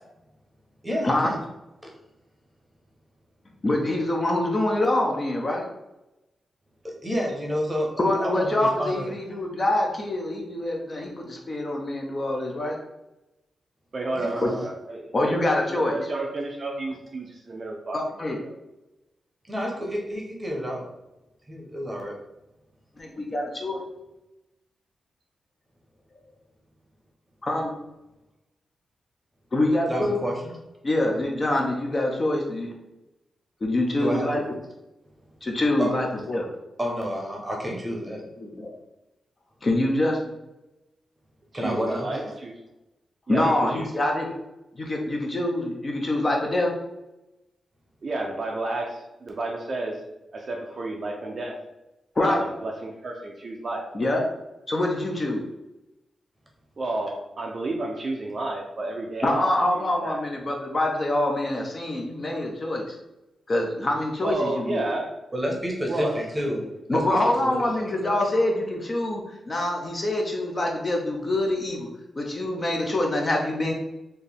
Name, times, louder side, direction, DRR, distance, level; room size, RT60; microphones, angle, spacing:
voice 1, 0.8-1.3 6.8-9.1 14.1-14.6 19.5-20.8 21.5-22.1 29.9-30.5 34.0-34.3 35.8-35.9 36.8-38.2 41.5-42.1 65.3-66.6 66.9-68.2, equal, 10° right, -1 dB, 0.9 m, -30 dB
voice 2, 3.6-5.7 8.0-12.8 14.4-14.6 15.1-16.0 17.9-18.4 23.0-23.8 27.4-27.7 29.5-30.2 30.8-32.7 33.6-34.4 35.4-36.5 38.4-38.7 39.6-40.2 43.3-44.3 44.7-46.7 52.2-52.4 53.9-54.2 54.7-55.4 59.2-63.0 63.5-64.8 66.9-71.9 72.2-73.7, left 1 dB, 25° left, 0 dB, 0.6 m, -25 dB
voice 3, 13.9-15.4 15.7-18.0 18.4-18.5 41.5-42.6 43.3-43.9 48.0-50.0 50.3-51.6 52.2-53.9 56.8-59.5 60.0-60.2 64.2-65.1 65.9-66.2, right 2 dB, 35° right, 1 dB, 0.5 m, -31 dB
4.3 x 2.6 x 3.4 m, 0.95 s
wide cardioid pair, 170°, 0 cm